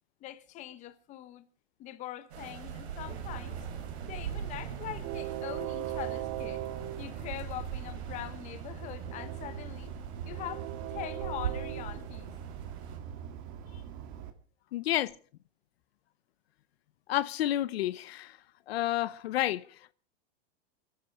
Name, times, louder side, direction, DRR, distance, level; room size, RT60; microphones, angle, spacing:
voice 1, 0.2-1.5 1.8-3.6 4.0-6.7 7.0-9.9 10.2-12.3, left 13 dB, 20° left, 1.0 m, -43 dB
sound 1, 2.3-13.0, right 9 dB, 80° right, 4.0 m, -42 dB
Train, 3.1-14.3, right 10 dB, 40° right, 2.0 m, -40 dB
voice 2, 14.7-15.2 17.1-18.4 18.7-19.9, left 13 dB, 70° left, 0.8 m, -30 dB
28.0 x 10.0 x 4.9 m
supercardioid pair, 165°, 32 cm